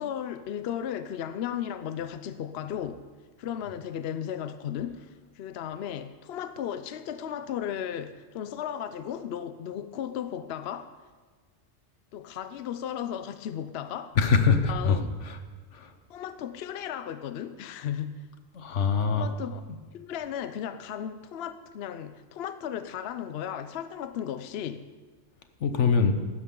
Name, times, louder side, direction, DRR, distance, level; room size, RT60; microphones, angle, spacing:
voice 1, 0.0-3.0 3.4-5.1 5.3-11.0 12.1-14.2 14.7-15.1 16.1-18.3 19.0-19.6 19.9-24.9, left 9 dB, 65° left, 11 dB, 0.8 m, -35 dB
voice 2, 14.2-15.4 15.7-15.9 18.5-19.3 25.6-26.2, left 5 dB, 90° left, 8 dB, 1.3 m, -24 dB
16.0 x 12.5 x 3.8 m, 1.4 s
omnidirectional pair, 1.2 m